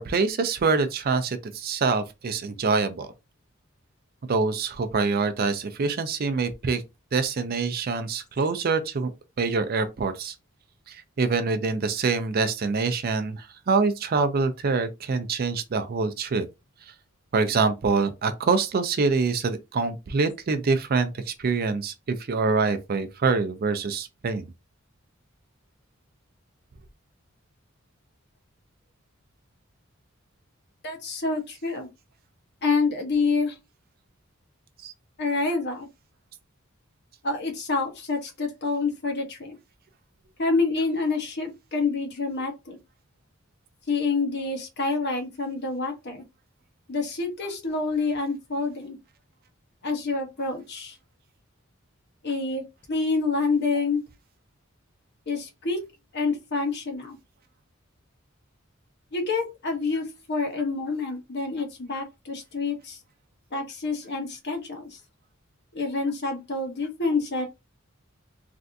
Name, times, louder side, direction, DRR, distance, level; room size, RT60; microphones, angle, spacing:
voice 1, 0.0-3.1 4.3-6.8 7.1-9.1 9.4-10.3 10.9-16.5 17.3-24.4 34.8-34.9, right 4 dB, 45° right, 0.4 m, -25 dB
voice 2, 30.8-31.9 32.6-33.6 35.2-35.9 37.2-39.6 40.4-42.8 43.9-46.2 46.9-49.0 49.8-51.0 52.2-52.6 52.9-54.0 55.3-55.8 56.1-57.2 59.1-63.0 63.5-65.0 65.7-67.5, left 3 dB, 55° left, 0.9 m, -27 dB
3.3 x 2.5 x 2.6 m
head